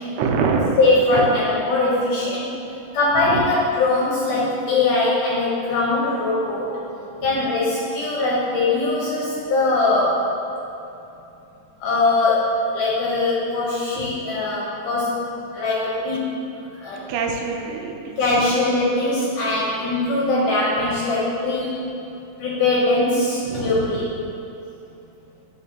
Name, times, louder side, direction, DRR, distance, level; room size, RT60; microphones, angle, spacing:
voice 1, 0.2-0.8 1.1-1.4 3.2-3.4 7.2-7.3 13.9-14.2 17.1-18.2 23.4-24.4, right 5 dB, 85° right, 2 dB, 2.8 m, -25 dB
voice 2, 0.8-2.5 2.9-6.8 7.2-10.2 11.8-15.2 15.5-16.2 16.8-17.0 18.2-21.9 22.4-24.1, left 2 dB, 70° left, -6 dB, 2.1 m, -21 dB
11.5 x 5.7 x 2.8 m, 2.8 s
omnidirectional pair, 4.8 m